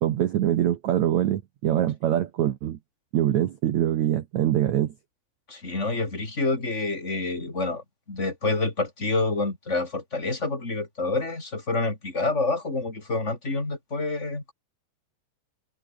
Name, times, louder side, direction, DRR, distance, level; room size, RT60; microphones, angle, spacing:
voice 1, 0.0-2.8 3.1-4.9, right 12 dB, 85° right, 1.6 m, -24 dB
voice 2, 5.5-14.5, left 3 dB, 15° left, 5.0 m, -28 dB
omnidirectional pair, 5.1 m